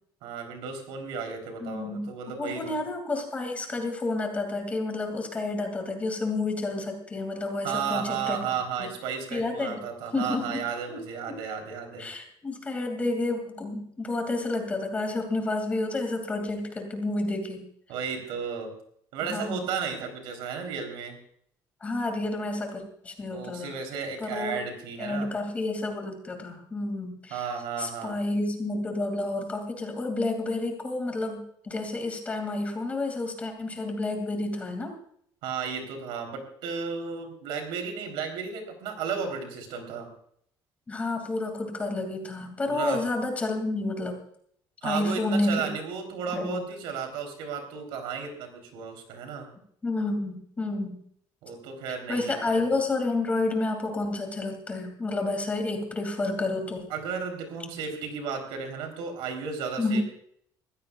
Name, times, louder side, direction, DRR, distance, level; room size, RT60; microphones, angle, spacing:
voice 1, 0.2-2.8 7.6-12.1 17.9-18.7 19.1-21.2 23.3-25.3 27.3-28.2 35.4-40.1 42.7-43.0 44.8-49.5 51.4-52.7 56.9-60.0, right 6 dB, 85° right, 4 dB, 3.6 m, -34 dB
voice 2, 1.6-2.1 2.4-8.4 8.8-8.9 9.3-9.8 10.1-10.6 10.9-11.0 11.2-11.4 12.0-17.6 19.2-19.8 21.8-23.7 24.2-24.6 25.0-27.5 27.8-34.9 40.9-44.2 44.8-45.7 46.3-46.7 49.8-51.0 52.1-56.9 59.8-60.0, left 2 dB, 15° left, 4 dB, 2.4 m, -30 dB
22.5 x 15.5 x 2.4 m, 0.66 s
cardioid pair, 170°, 8 cm